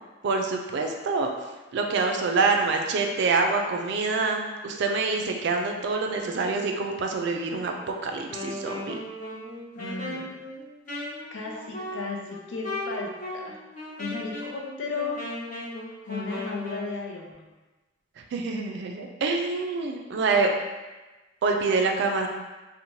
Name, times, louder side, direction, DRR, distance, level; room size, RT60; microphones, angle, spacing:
voice 1, 0.2-1.3 1.7-7.7 8.0-9.0 18.3-20.5 21.4-22.3, right 4 dB, 65° right, 3 dB, 0.3 m, -26 dB
Wind instrument woodwind instrument, 8.2-16.9, left 1 dB, 45° left, 0.8 m, -37 dB
voice 2, 9.7-10.4 11.3-13.6 14.0-15.2 16.0-17.5, left 4 dB, 75° left, -1 dB, 0.5 m, -35 dB
2.6 x 2.1 x 2.9 m, 1.2 s
head